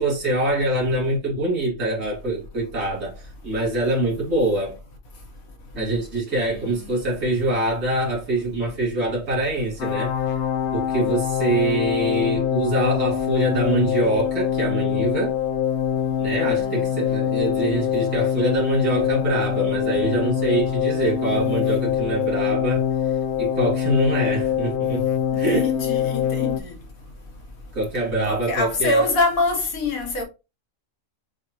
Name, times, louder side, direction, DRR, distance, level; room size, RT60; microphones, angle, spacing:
voice 1, 0.0-4.8 5.7-10.4 10.7-15.3 16.2-22.9 23.4-25.0 25.4-25.6 27.7-29.1, right 1 dB, 70° right, 2.8 m, -24 dB
voice 2, 6.5-6.9 16.4-16.9 25.3-26.8 28.3-30.2, left 2 dB, 80° left, 1.6 m, -25 dB
sound 1, 9.8-26.6, left 9 dB, 60° left, 0.8 m, -24 dB
7.0 x 2.6 x 2.9 m
omnidirectional pair, 1.4 m